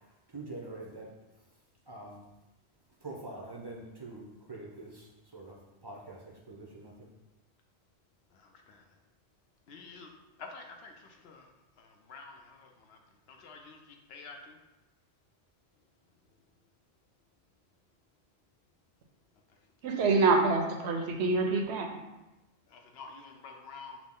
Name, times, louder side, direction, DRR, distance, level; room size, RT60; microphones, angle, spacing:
voice 1, 0.3-1.1 1.9-2.2 3.0-7.1, right 2 dB, 35° right, -1 dB, 0.4 m, -45 dB
voice 2, 9.7-10.1 10.4-10.9 11.2-11.4 12.1-13.0 13.4-13.8 14.1-14.5 22.7-24.0, left 4 dB, 75° left, 3 dB, 0.8 m, -48 dB
voice 3, 19.8-22.0, right 3 dB, 85° right, 3 dB, 0.9 m, -26 dB
5.9 x 2.0 x 3.6 m, 1.0 s
omnidirectional pair, 1.1 m